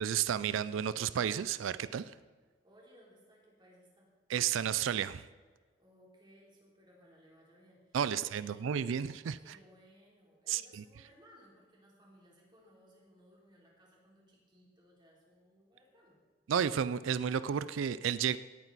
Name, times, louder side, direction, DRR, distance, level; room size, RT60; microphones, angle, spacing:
voice 1, 0.0-2.2 4.3-5.3 7.9-9.6 10.5-10.8 16.5-18.4, right 8 dB, 80° right, 0.4 m, -32 dB
voice 2, 2.6-4.1 5.6-8.8 9.4-16.2, equal, 25° right, 3.6 m, -62 dB
18.0 x 9.0 x 4.1 m
head